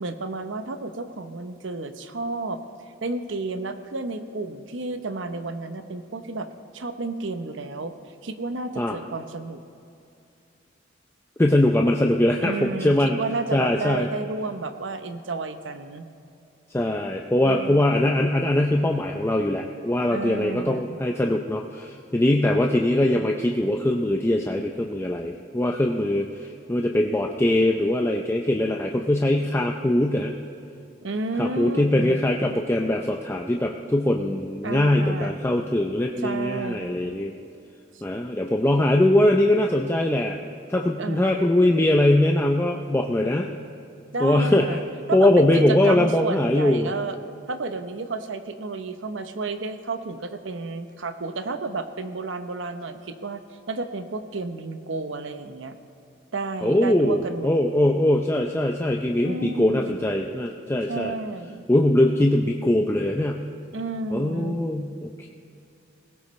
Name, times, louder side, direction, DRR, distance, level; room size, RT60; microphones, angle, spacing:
voice 1, 0.0-2.6 3.0-6.5 6.7-7.9 8.2-9.6 12.4-16.1 17.4-17.8 20.1-21.0 31.0-32.2 34.6-35.4 36.2-37.0 41.0-41.5 44.1-44.8 45.1-47.2 47.5-53.4 53.7-55.7 56.3-57.5 59.2-60.0 60.9-61.7 63.7-64.6, right 3 dB, 70° right, 9 dB, 0.8 m, -31 dB
voice 2, 11.4-13.2 13.5-14.1 16.7-30.3 31.4-37.3 38.0-40.4 40.7-43.5 44.2-44.8 45.1-46.9 56.6-61.1 61.7-63.4 64.1-65.3, left 1 dB, 10° left, 2 dB, 0.5 m, -22 dB
20.0 x 17.0 x 3.2 m, 2.6 s
head